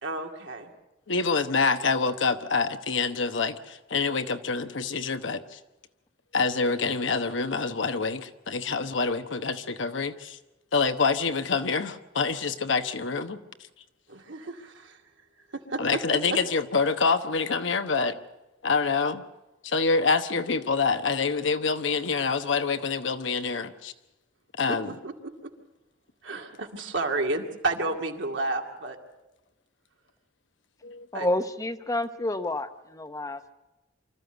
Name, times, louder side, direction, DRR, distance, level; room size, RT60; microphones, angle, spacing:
voice 1, 0.0-0.7 14.1-15.0 15.5-16.0 25.0-25.5 26.2-29.0 31.1-31.3, right 2 dB, 80° right, 2 dB, 2.2 m, -31 dB
voice 2, 1.1-5.6 6.3-10.4 10.7-13.4 15.8-18.2 18.6-19.2 19.6-23.9 24.6-24.9 30.8-31.1, left 4 dB, 80° left, 9 dB, 1.1 m, -26 dB
voice 3, 31.1-33.5, left 1 dB, 20° left, 10 dB, 0.8 m, -29 dB
25.0 x 14.0 x 8.0 m, 1.0 s
head